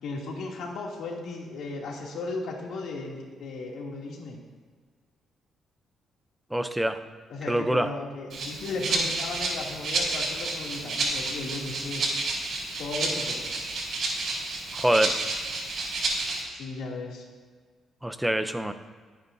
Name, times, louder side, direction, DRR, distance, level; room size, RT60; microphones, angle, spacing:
voice 1, 0.0-4.4 7.3-12.0 12.8-13.4 16.5-17.2, left 3 dB, 80° left, -2 dB, 2.8 m, -35 dB
voice 2, 6.5-7.0 7.5-7.9 14.7-15.2 18.0-18.7, right 1 dB, 5° right, 9 dB, 0.7 m, -25 dB
Rattle (instrument), 8.3-16.4, right 3 dB, 60° right, 4.5 m, -30 dB
23.5 x 9.3 x 2.8 m, 1.5 s
cardioid pair, 135°, 0 cm